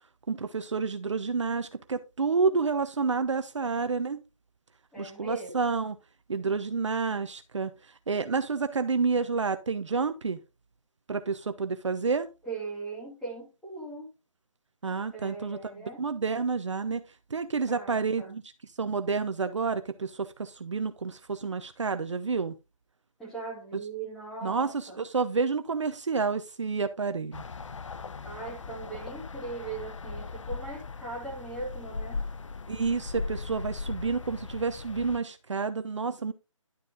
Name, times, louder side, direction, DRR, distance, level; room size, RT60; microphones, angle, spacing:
voice 1, 0.3-4.2 5.0-6.0 6.3-7.7 8.1-10.4 11.1-12.3 14.8-15.6 16.0-17.0 17.3-18.4 18.8-22.5 24.4-27.4 32.7-36.3, right 4 dB, 60° right, 0.9 m, -29 dB
voice 2, 4.9-5.6 12.4-14.1 15.1-16.0 17.7-18.3 23.2-25.0 28.2-32.2, right 3 dB, 5° left, 2.5 m, -39 dB
sound 1, 27.3-35.2, left 4 dB, 65° left, 0.8 m, -38 dB
11.0 x 5.1 x 3.6 m
figure-of-eight pair, 160°, 17 cm